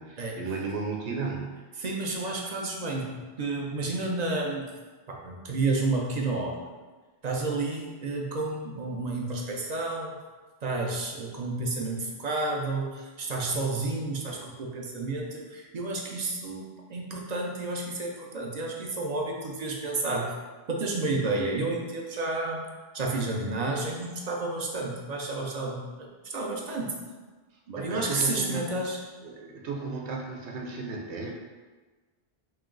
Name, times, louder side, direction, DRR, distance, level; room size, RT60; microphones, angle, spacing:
voice 1, 0.0-1.6 27.8-28.8 29.2-31.3, right 4 dB, 85° right, 0 dB, 0.9 m, -34 dB
voice 2, 1.8-4.6 5.1-6.6 7.2-10.1 10.6-20.3 20.7-22.6 22.9-27.0 27.7-29.0, right 2 dB, 45° right, 0 dB, 0.6 m, -31 dB
3.2 x 3.0 x 3.7 m, 1.3 s
omnidirectional pair, 1.1 m